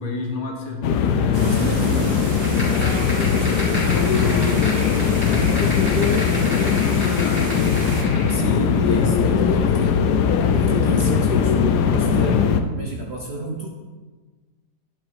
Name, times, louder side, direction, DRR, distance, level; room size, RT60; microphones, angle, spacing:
voice 1, 0.0-2.1 2.5-6.4 8.2-8.6, left 4 dB, 55° left, 2 dB, 1.5 m, -30 dB
sound 1, 0.8-12.6, left 6 dB, 70° left, 1.2 m, -19 dB
sound 2, 1.3-8.0, right 2 dB, 65° right, 2.1 m, -35 dB
voice 2, 1.4-2.2 2.6-4.9 5.9-6.4 8.3-10.0 10.5-12.5 12.7-13.7, right 2 dB, 45° right, 0 dB, 0.9 m, -32 dB
sound 3, 2.4-8.5, left 1 dB, 5° left, 3.2 m, -32 dB
11.0 x 5.9 x 4.7 m, 1.3 s
omnidirectional pair, 2.0 m